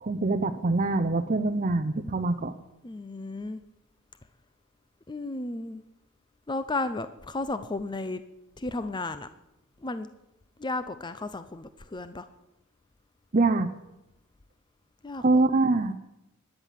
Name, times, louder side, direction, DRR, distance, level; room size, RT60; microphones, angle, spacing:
voice 1, 0.0-2.5 13.3-13.7 15.2-15.9, right 3 dB, 40° right, 6 dB, 0.7 m, -24 dB
voice 2, 2.8-3.6 5.1-5.8 6.5-8.2 8.6-9.3 9.8-10.1 10.6-12.3 15.0-15.4, left 2 dB, 20° left, 11 dB, 0.6 m, -33 dB
16.5 x 11.0 x 7.4 m, 0.92 s
head